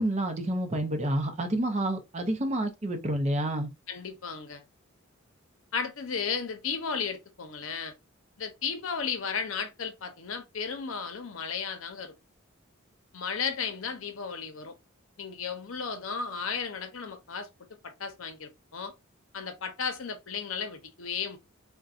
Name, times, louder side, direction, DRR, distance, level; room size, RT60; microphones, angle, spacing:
voice 1, 0.0-3.7, right 1 dB, 30° right, 0.6 m, -29 dB
voice 2, 3.9-4.6 5.7-7.9 8.4-12.1 13.1-14.7 15.2-17.5 17.8-18.9 19.3-21.4, left 6 dB, 70° left, 0.7 m, -34 dB
3.8 x 2.2 x 2.4 m
head